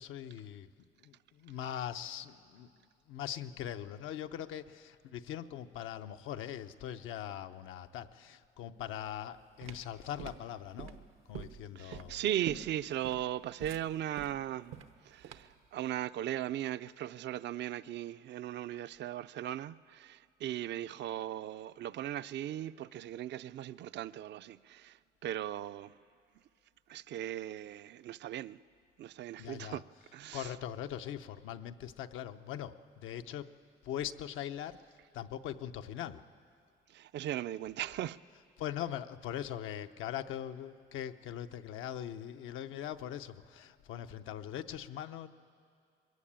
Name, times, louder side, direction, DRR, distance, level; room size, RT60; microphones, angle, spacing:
voice 1, 0.0-2.7 3.1-12.2 29.4-29.8 30.3-33.6 33.8-34.8 35.1-36.2 38.6-45.3, left 10 dB, 90° left, 0.7 m, -41 dB
sound 1, 9.2-15.7, right 7 dB, 90° right, 0.9 m, -47 dB
voice 2, 11.8-14.7 15.0-25.9 26.9-28.6 29.0-29.8 30.1-30.5 36.9-38.2, right 12 dB, 60° right, 0.4 m, -38 dB
21.5 x 16.0 x 8.8 m
cardioid pair, 90°, 20 cm